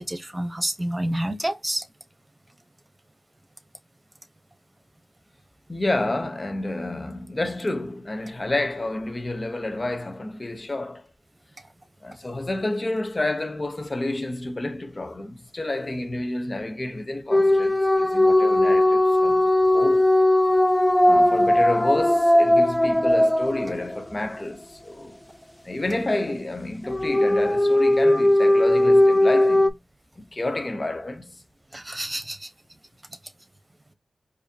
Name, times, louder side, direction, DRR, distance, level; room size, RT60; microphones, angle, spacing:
voice 1, 0.0-1.8 31.7-32.5, right 1 dB, 25° right, 0.9 m, -28 dB
voice 2, 5.7-11.0 12.0-20.1 21.0-25.2 25.6-29.8 30.2-31.4, left 2 dB, 40° left, 0.8 m, -29 dB
sound 1, 17.3-24.2 26.9-29.7, left 1 dB, 10° left, 0.5 m, -18 dB
4.8 x 2.6 x 2.7 m
cardioid pair, 40°, 0 cm